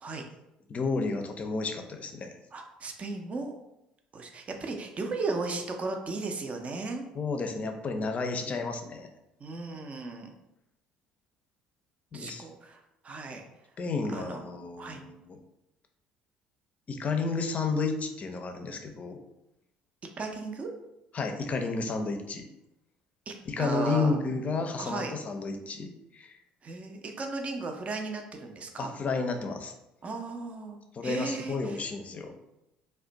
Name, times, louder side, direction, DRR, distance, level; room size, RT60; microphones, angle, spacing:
voice 1, 0.7-2.3 7.1-9.1 12.1-12.4 13.8-15.4 16.9-19.2 21.1-22.5 23.5-26.4 28.8-29.7 30.9-32.3, left 4 dB, 40° left, 5 dB, 0.5 m, -31 dB
voice 2, 2.5-3.5 4.1-7.0 8.4-8.6 9.4-10.3 12.1-13.5 14.1-14.4 14.8-15.0 20.2-20.7 23.3-24.2 24.8-25.1 26.6-28.9 30.0-30.8 31.0-31.9, right 3 dB, 35° right, 3 dB, 0.5 m, -36 dB
2.4 x 2.2 x 3.9 m, 0.87 s
hypercardioid pair, 65°, 4 cm